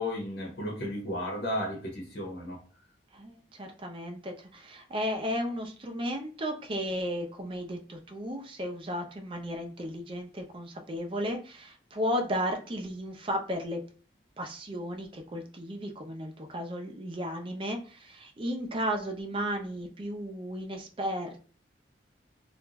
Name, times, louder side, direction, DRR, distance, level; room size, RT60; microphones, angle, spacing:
voice 1, 0.0-2.6, left 1 dB, 65° left, -2 dB, 0.8 m, -34 dB
voice 2, 3.1-13.8 14.4-21.4, equal, 30° right, 3 dB, 0.5 m, -34 dB
2.4 x 2.2 x 2.9 m, 0.40 s
head